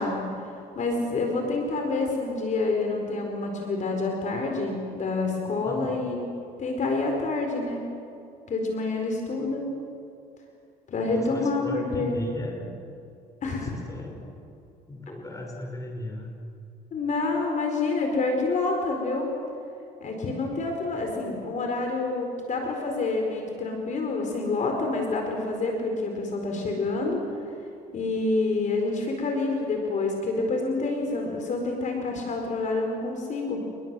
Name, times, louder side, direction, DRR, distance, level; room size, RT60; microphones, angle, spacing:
voice 1, 0.0-6.3 6.6-7.8 8.5-9.7 10.9-12.2 13.4-13.8 16.9-19.3 20.0-27.4 27.9-33.7, left 3 dB, 45° left, 2 dB, 4.5 m, -28 dB
voice 2, 5.7-6.0 11.1-12.7 13.5-14.2 14.9-16.3, left 1 dB, 20° left, 2 dB, 5.8 m, -37 dB
28.5 x 21.5 x 7.7 m, 2.6 s
cardioid pair, 110°, 17 cm